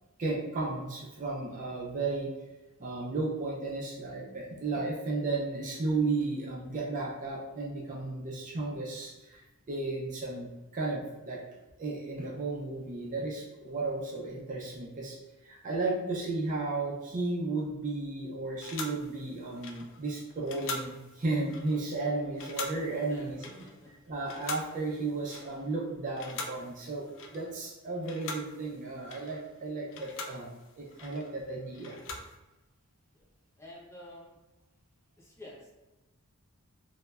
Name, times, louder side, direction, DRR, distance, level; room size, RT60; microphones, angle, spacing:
voice 1, 0.2-2.3 2.8-11.4 11.8-15.2 15.4-23.4 24.1-27.1 27.3-32.0, right 3 dB, 35° right, -2 dB, 0.4 m, -34 dB
sound 1, 18.6-25.8 26.1-27.7 28.0-32.4, left 3 dB, 60° left, 0.3 m, -43 dB
voice 2, 22.9-23.9 33.1-33.3 33.6-34.4 35.2-35.7, left 1 dB, 10° left, -5 dB, 0.6 m, -49 dB
3.1 x 2.1 x 2.3 m, 1.1 s
head